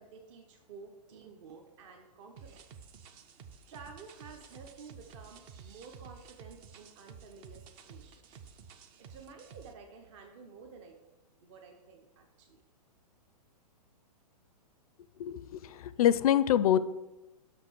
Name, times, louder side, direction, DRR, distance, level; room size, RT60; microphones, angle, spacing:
voice 1, 0.0-2.7 3.7-8.4 9.0-11.0 11.4-12.6, right 5 dB, 45° right, 2 dB, 0.9 m, -52 dB
sound 1, 2.4-9.7, right 6 dB, 25° right, 0.4 m, -52 dB
voice 2, 15.2-16.8, left 11 dB, 60° left, 15 dB, 0.4 m, -25 dB
6.3 x 5.1 x 6.1 m, 1.0 s
hypercardioid pair, 140°, 21 cm